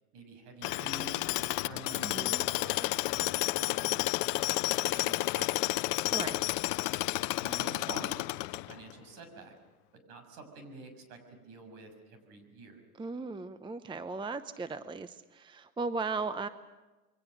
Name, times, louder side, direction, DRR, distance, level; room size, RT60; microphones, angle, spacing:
voice 1, 0.1-6.0 7.4-9.5 10.1-12.8, right 3 dB, 55° right, 6 dB, 6.7 m, -48 dB
Tools, 0.6-8.9, left 20 dB, 55° left, 0.8 m, -31 dB
voice 2, 2.0-2.4 6.1-6.4 13.0-16.5, right 4 dB, 10° right, 12 dB, 0.7 m, -37 dB
28.5 x 23.0 x 6.6 m, 1.2 s
hypercardioid pair, 95°, 45 cm